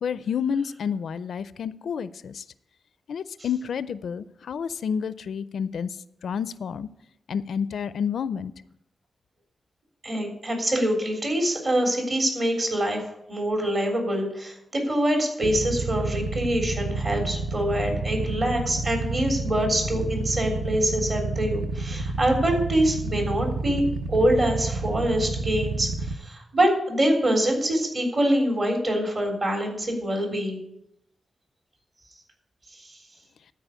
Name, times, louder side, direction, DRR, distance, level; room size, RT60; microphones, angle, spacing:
voice 1, 0.0-2.4 3.1-5.9 6.2-6.9 7.3-8.5, left 7 dB, 80° left, 16 dB, 0.4 m, -29 dB
voice 2, 10.0-13.0 13.3-23.8 24.1-30.6, right 1 dB, 45° right, 2 dB, 3.5 m, -25 dB
Motorcycle / Idling, 15.4-26.1, right 3 dB, 65° right, 0.9 m, -30 dB
12.5 x 4.9 x 8.2 m, 0.81 s
wide cardioid pair, 95°, 0 cm